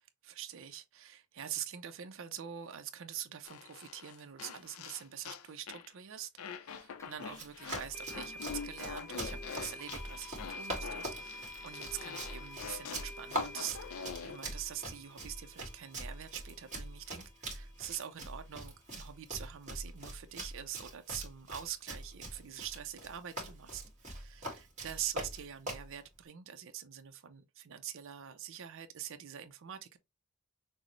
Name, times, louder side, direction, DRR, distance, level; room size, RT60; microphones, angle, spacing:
voice 1, 0.2-30.0, right 10 dB, 65° right, 0.5 m, -44 dB
sound 1, 3.5-5.9 6.4-14.4, left 6 dB, 80° left, 0.5 m, -45 dB
sound 2, 7.0-7.1 7.9-18.9, left 1 dB, 15° left, 0.6 m, -50 dB
Run, 7.3-25.9, right 1 dB, 35° right, 1.7 m, -43 dB
6.1 x 2.0 x 3.1 m
head